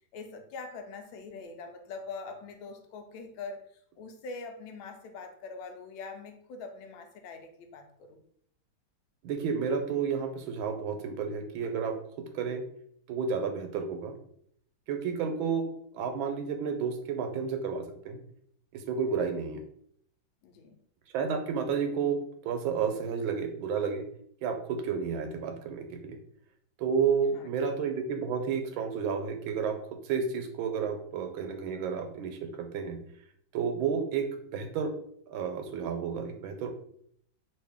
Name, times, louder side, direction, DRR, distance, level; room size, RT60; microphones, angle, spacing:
voice 1, 0.1-3.6 4.0-8.2 15.0-15.1 20.4-20.8 27.3-27.7, left 4 dB, 90° left, 5 dB, 1.4 m, -43 dB
voice 2, 9.2-12.0 12.3-12.6 13.1-14.1 14.9-15.7 15.9-18.2 18.7-19.6 21.1-22.2 22.4-24.0 24.4-26.2 26.8-29.8 30.0-33.0 33.5-34.3 34.5-34.9 35.3-36.7, right 6 dB, 85° right, 5 dB, 1.4 m, -31 dB
3.2 x 2.6 x 3.5 m, 0.66 s
omnidirectional pair, 2.1 m